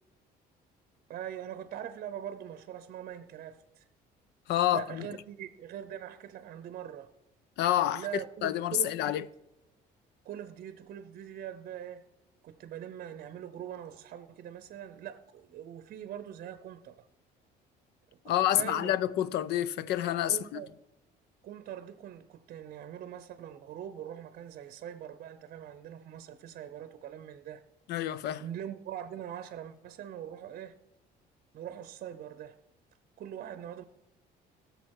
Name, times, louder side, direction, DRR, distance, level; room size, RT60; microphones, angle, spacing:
voice 1, 1.1-3.9 4.7-7.1 7.8-9.2 10.2-12.1 12.4-17.0 18.2-18.9 20.3-20.7 21.4-27.6 28.4-30.7 31.5-32.6 33.2-33.8, right 10 dB, 60° right, 0.7 m, -42 dB
voice 2, 4.5-5.0 7.6-8.1 8.4-9.2 18.3-20.4 27.9-28.4, left 12 dB, 80° left, 0.5 m, -28 dB
16.5 x 6.7 x 4.8 m
cardioid pair, 110°, 17 cm